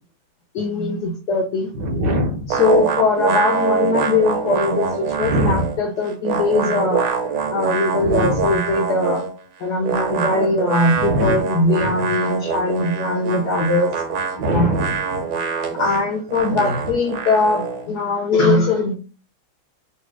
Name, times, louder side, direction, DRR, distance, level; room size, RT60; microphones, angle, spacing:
voice 1, 0.5-1.7 2.5-7.1 7.5-9.2 9.6-13.9 14.4-14.8 15.7-18.9, left 2 dB, 65° left, 1 dB, 1.0 m, -20 dB
voice 2, 1.7-2.5 5.2-5.7 8.0-8.5 11.0-11.4 14.4-15.2 16.5-16.8, equal, 60° right, 2 dB, 1.6 m, -22 dB
sound 1, 2.5-5.8 6.0-9.4 9.8-17.9, right 5 dB, 75° right, 1.6 m, -24 dB
3.3 x 3.2 x 4.8 m, 0.35 s
omnidirectional pair, 2.3 m